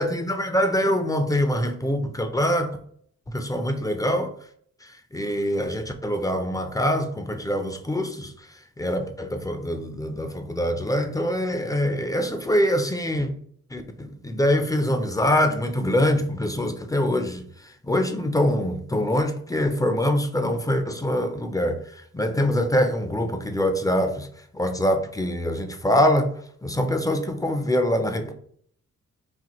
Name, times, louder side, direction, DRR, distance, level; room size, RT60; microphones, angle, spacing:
voice 1, 0.0-2.8 3.3-4.3 4.8-13.3 13.7-24.3 24.5-26.3 26.6-28.3, left 1 dB, 10° left, 0.4 m, -24 dB
4.1 x 2.5 x 2.9 m
cardioid pair, 100°, 29 cm